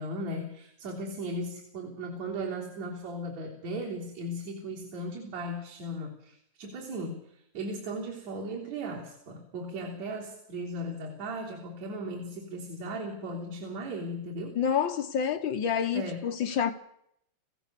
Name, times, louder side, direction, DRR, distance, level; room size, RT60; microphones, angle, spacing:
voice 1, 0.0-14.6 15.9-16.2, right 1 dB, 65° right, 4.6 m, -37 dB
voice 2, 14.5-16.7, left 7 dB, 55° left, 1.4 m, -28 dB
24.5 x 16.0 x 6.8 m
omnidirectional pair, 3.4 m